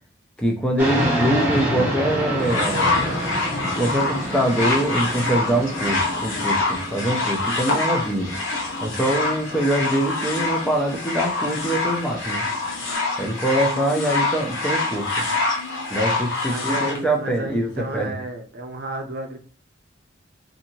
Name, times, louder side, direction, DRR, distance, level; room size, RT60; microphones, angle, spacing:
voice 1, 0.4-3.2 3.6-8.3 8.8-12.4 13.2-15.1 15.9-18.1, right 1 dB, 5° left, 0 dB, 0.4 m, -24 dB
sound 1, 0.8-12.9, equal, 10° right, 0.8 m, -29 dB
sound 2, 2.4-17.0 17.8-17.9, left 3 dB, 85° left, 0.9 m, -25 dB
voice 2, 16.5-19.4, right 1 dB, 55° right, 3 dB, 0.6 m, -32 dB
2.7 x 2.6 x 2.7 m, 0.41 s
head